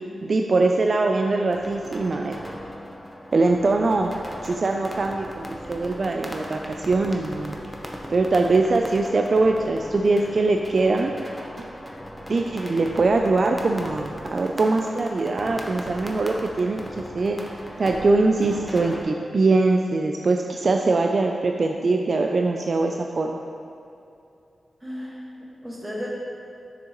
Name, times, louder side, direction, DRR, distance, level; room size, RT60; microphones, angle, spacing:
voice 1, 0.2-2.5 3.3-4.1 4.4-7.6 7.9-11.1 11.6-11.7 12.3-17.4 17.8-23.4, right 3 dB, 55° right, 2 dB, 0.3 m, -22 dB
sound 1, 1.5-19.0, equal, ahead, 0.7 m, -38 dB
voice 2, 24.8-26.1, equal, 15° right, -4 dB, 1.4 m, -35 dB
6.6 x 6.3 x 3.0 m, 2.6 s
cardioid pair, 65°, 0 cm